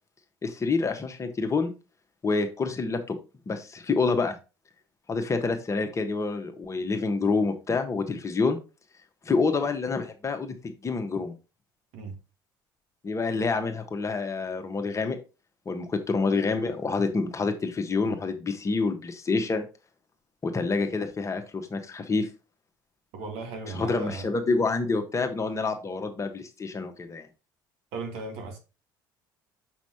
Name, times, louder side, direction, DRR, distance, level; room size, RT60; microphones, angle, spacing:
voice 1, 0.4-1.7 2.2-3.2 3.5-4.4 5.1-8.6 9.2-11.3 13.0-15.2 15.6-19.7 20.4-22.3 23.7-27.3, left 4 dB, 25° left, 1.3 m, -27 dB
voice 2, 23.1-24.3 27.9-28.6, right 3 dB, 60° right, 2.0 m, -36 dB
6.7 x 5.9 x 2.8 m
hypercardioid pair, 60°, 11 cm